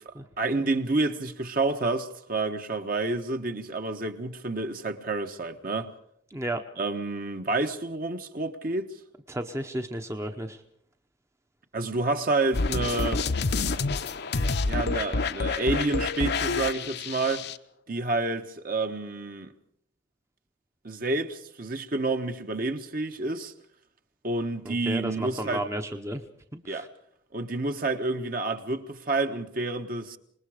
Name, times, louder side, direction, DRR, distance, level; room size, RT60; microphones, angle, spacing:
voice 1, 0.4-5.9 6.8-8.9 11.7-13.2 14.6-17.5 17.9-19.5 20.8-23.5 24.2-25.6 26.7-26.9 27.3-30.2, right 2 dB, 45° right, 1.3 m, -29 dB
voice 2, 6.3-6.6 9.3-10.6 24.6-26.2 26.5-26.9, right 1 dB, 15° right, 0.8 m, -33 dB
sound 1, 12.5-17.6, left 3 dB, 55° left, 0.8 m, -28 dB
26.0 x 20.0 x 5.0 m
head